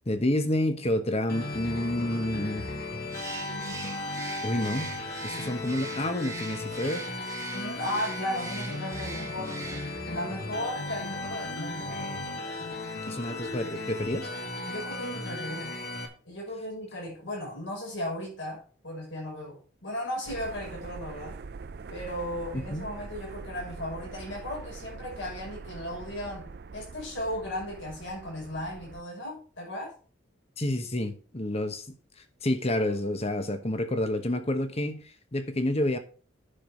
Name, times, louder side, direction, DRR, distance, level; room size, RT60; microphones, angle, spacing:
voice 1, 0.1-2.7 4.4-4.9 5.2-7.1 13.1-14.3 22.7-22.9 30.6-31.8 32.4-36.0, left 1 dB, 30° left, 1.1 m, -29 dB
sound 1, 1.3-16.1, left 2 dB, 50° left, 1.9 m, -36 dB
Bird, 3.1-10.1, right 3 dB, 15° right, 1.4 m, -42 dB
voice 2, 7.5-12.3 14.7-15.7 16.3-21.4 21.9-29.9, left 1 dB, 75° left, 6.0 m, -36 dB
sound 2, 20.3-29.0, right 4 dB, 55° right, 0.5 m, -43 dB
10.0 x 6.1 x 5.0 m
head